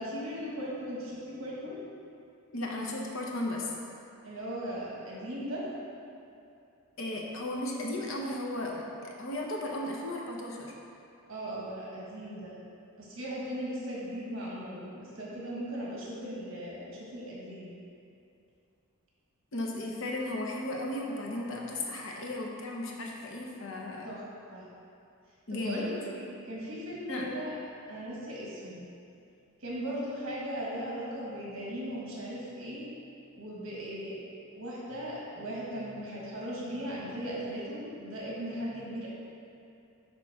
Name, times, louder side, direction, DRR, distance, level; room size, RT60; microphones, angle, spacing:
voice 1, 0.0-1.8 4.2-5.6 11.3-12.5 13.0-17.7 24.0-24.2 24.5-24.7 25.5-27.5 27.9-28.8 29.6-32.9 33.3-34.2 34.5-39.1, equal, 60° right, -6 dB, 1.4 m, -38 dB
voice 2, 2.5-3.7 7.0-10.7 19.5-24.1 25.5-25.9 27.1-27.3, left 1 dB, 60° left, -1 dB, 0.8 m, -35 dB
6.2 x 4.7 x 5.8 m, 2.6 s
head